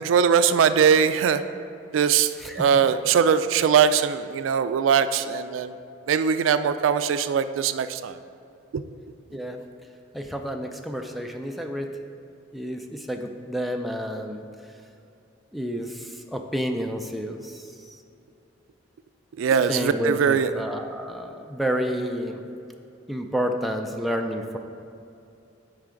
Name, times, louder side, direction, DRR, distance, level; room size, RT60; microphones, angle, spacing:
voice 1, 0.0-1.4 1.9-5.7 6.1-8.2 8.7-8.8 19.4-20.5, right 7 dB, 80° right, 11 dB, 0.3 m, -21 dB
voice 2, 2.4-2.7 9.3-9.6 10.1-11.9 12.5-14.4 15.5-18.0 19.7-22.4 23.1-24.6, equal, ahead, 3 dB, 0.3 m, -30 dB
9.0 x 4.7 x 3.8 m, 2.7 s
head